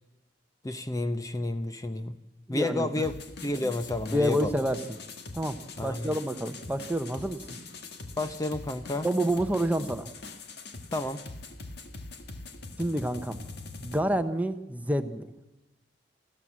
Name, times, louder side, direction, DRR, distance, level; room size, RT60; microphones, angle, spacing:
voice 1, 0.6-2.2 2.5-3.1 3.4-4.5 5.8-6.1 8.2-9.1 10.9-11.2, left 2 dB, 20° left, 9 dB, 0.7 m, -30 dB
voice 2, 2.5-3.0 4.1-4.8 5.3-5.6 5.8-7.4 9.0-10.1 12.8-13.4 13.8-15.3, right 1 dB, 10° right, 9 dB, 0.9 m, -28 dB
sound 1, 3.0-14.0, left 3 dB, 65° left, 1.7 m, -43 dB
28.5 x 13.0 x 7.5 m, 1.0 s
head